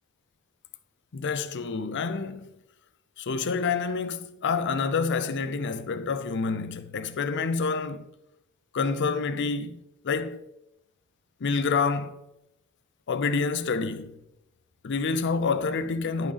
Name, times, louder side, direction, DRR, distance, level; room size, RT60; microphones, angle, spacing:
voice 1, 1.1-2.5 3.2-8.1 8.7-9.8 10.0-10.4 11.4-12.1 13.1-14.1 14.8-16.3, left 4 dB, 55° left, 0.5 m, -28 dB
10.5 x 5.3 x 3.4 m
head